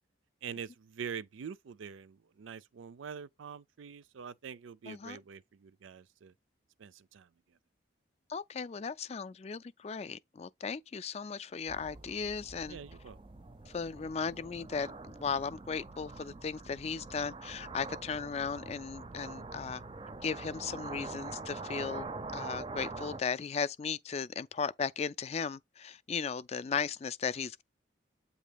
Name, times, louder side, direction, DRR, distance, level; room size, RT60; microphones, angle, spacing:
voice 1, 0.4-6.3 6.8-7.3 12.7-13.2, right 7 dB, 90° right, 0.4 m, -45 dB
voice 2, 4.9-5.2 8.3-12.8 13.7-19.8 20.2-22.1 22.3-27.6, left 5 dB, 35° left, 0.3 m, -36 dB
sound 1, 11.7-23.2, right 3 dB, 25° right, 0.5 m, -44 dB
8.2 x 2.8 x 5.1 m
head